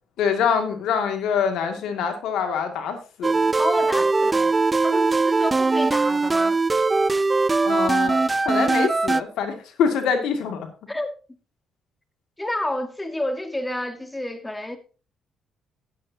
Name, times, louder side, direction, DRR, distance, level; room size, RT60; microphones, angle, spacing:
voice 1, 0.2-3.5 7.6-10.7, left 7 dB, 80° left, 2.2 m, -25 dB
sound 1, 3.2-9.2, right 3 dB, 25° right, 0.4 m, -20 dB
voice 2, 3.5-6.6 10.9-11.1 12.4-14.8, left 1 dB, 10° left, 1.7 m, -29 dB
13.5 x 9.6 x 2.8 m
supercardioid pair, 65°, 0 cm